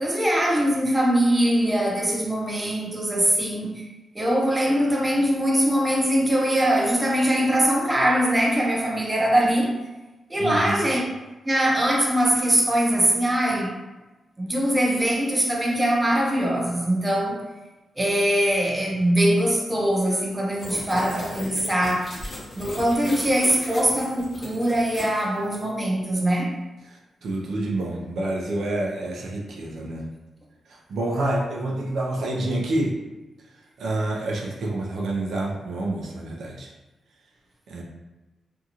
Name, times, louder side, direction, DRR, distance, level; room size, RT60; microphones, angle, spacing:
voice 1, 0.0-3.9 4.1-9.7 10.3-11.0 11.4-13.7 14.4-17.4 18.0-22.1 22.6-26.5, right 1 dB, 15° right, 0.6 m, -22 dB
voice 2, 10.4-10.8 26.8-30.1 30.7-33.0 33.8-36.7 37.7-37.8, right 2 dB, 80° right, 0.5 m, -28 dB
sound 1, 20.6-25.6, left 1 dB, 45° left, 0.9 m, -37 dB
2.6 x 2.4 x 2.8 m
cardioid pair, 90°, 0 cm